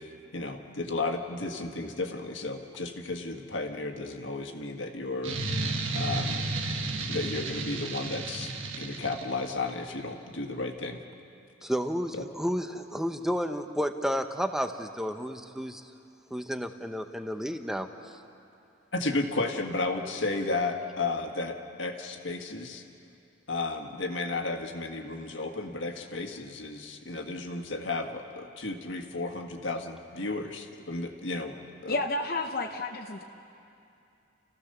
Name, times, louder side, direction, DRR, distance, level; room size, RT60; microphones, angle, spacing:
voice 1, 0.0-5.4 5.9-6.4 7.1-11.0 12.1-12.2 18.9-22.8 23.5-32.0, left 3 dB, 70° left, 4 dB, 1.7 m, -33 dB
sound 1, 5.2-9.7, right 3 dB, 80° right, 1.6 m, -33 dB
voice 2, 11.6-15.9 16.3-17.9, equal, ahead, 7 dB, 0.8 m, -31 dB
voice 3, 31.9-33.2, left 2 dB, 50° left, 3 dB, 0.9 m, -31 dB
29.5 x 15.5 x 6.8 m, 2.7 s
head